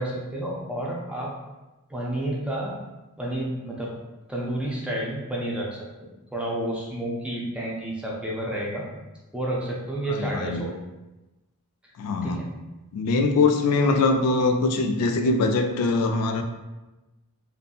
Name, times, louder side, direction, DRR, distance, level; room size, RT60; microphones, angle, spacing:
voice 1, 0.0-1.3 1.9-2.8 3.2-3.9 4.3-5.8 6.3-8.8 9.3-10.7 12.2-12.5, right 1 dB, 5° right, -4 dB, 0.4 m, -30 dB
voice 2, 10.1-10.6 12.0-12.5 12.9-16.4, left 3 dB, 90° left, 6 dB, 0.3 m, -22 dB
2.6 x 2.6 x 2.3 m, 1.1 s
head